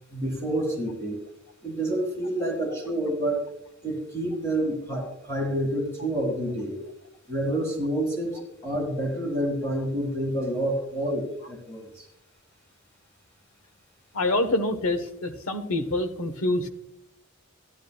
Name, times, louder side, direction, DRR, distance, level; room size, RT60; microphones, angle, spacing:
voice 1, 0.1-1.2 1.6-3.4 3.8-6.8 7.3-12.1, right 1 dB, 15° left, -1 dB, 1.8 m, -28 dB
voice 2, 14.1-16.7, left 2 dB, 85° left, 9 dB, 1.1 m, -26 dB
12.5 x 11.5 x 2.3 m, 0.84 s
head